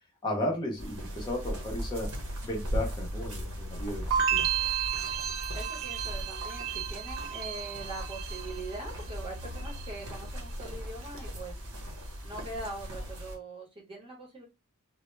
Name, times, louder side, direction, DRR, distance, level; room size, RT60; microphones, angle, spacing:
voice 1, 0.2-2.1 2.4-4.6, left 1 dB, 20° left, 0.6 m, -34 dB
sound 1, 0.8-13.4, equal, 85° right, 0.8 m, -38 dB
sound 2, 4.1-9.1 9.4-10.1, right 9 dB, 60° right, 0.3 m, -32 dB
voice 2, 5.5-14.5, right 2 dB, 25° right, 0.8 m, -42 dB
2.0 x 2.0 x 3.1 m
head